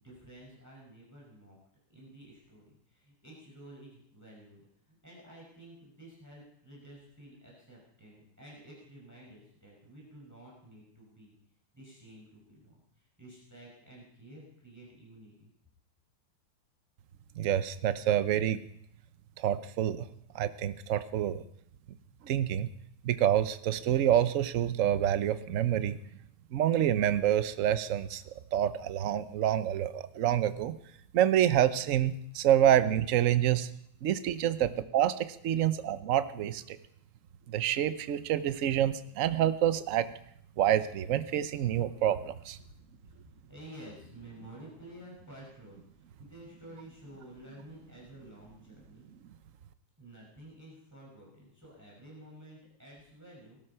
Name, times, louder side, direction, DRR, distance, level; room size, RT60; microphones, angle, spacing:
voice 1, 0.0-1.6 1.9-11.4 11.7-15.5 42.7-42.8 43.1-49.1 50.0-53.6, right 1 dB, 5° right, -3 dB, 5.4 m, -52 dB
voice 2, 17.4-18.6 19.4-20.1 20.3-21.4 22.2-22.7 23.0-26.0 26.5-28.2 28.5-30.8 31.1-33.7 34.0-36.8 37.5-40.1 40.6-42.6, right 11 dB, 65° right, 12 dB, 0.7 m, -27 dB
19.0 x 12.5 x 5.6 m, 0.70 s
omnidirectional pair, 2.4 m